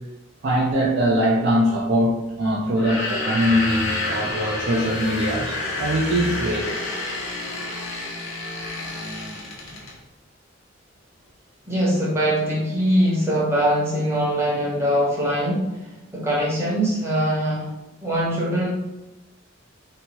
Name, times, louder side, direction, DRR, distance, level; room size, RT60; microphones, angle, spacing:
voice 1, 0.4-6.7, equal, 55° right, -2 dB, 0.4 m, -22 dB
sound 1, 2.7-10.0, left 2 dB, 90° left, 0.7 m, -29 dB
voice 2, 11.6-17.7 18.0-18.7, equal, 10° right, -6 dB, 0.8 m, -22 dB
2.8 x 2.2 x 2.9 m, 0.97 s
head